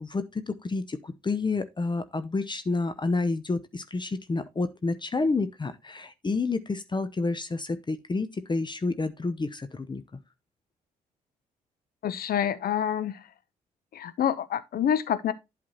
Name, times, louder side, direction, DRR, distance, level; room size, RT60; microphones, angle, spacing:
voice 1, 0.0-10.0, left 3 dB, 25° left, 0.9 m, -29 dB
voice 2, 12.0-13.2 13.9-15.3, left 9 dB, 50° left, 0.9 m, -27 dB
11.5 x 4.2 x 4.2 m
figure-of-eight pair, 40°, 20 cm